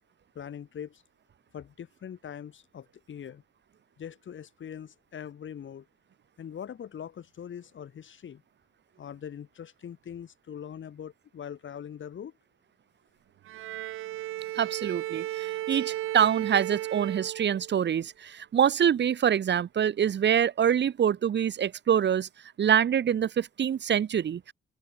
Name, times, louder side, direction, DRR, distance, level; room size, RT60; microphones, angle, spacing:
voice 1, 0.3-1.0 1.5-3.4 4.0-5.9 6.4-8.4 9.0-12.3, left 8 dB, 70° left, 7.6 m, -42 dB
Bowed string instrument, 13.5-17.9, right 14 dB, 85° right, 1.3 m, -35 dB
voice 2, 14.6-22.3 22.6-24.5, right 9 dB, 60° right, 1.0 m, -25 dB
open air
supercardioid pair, 55°, 21 cm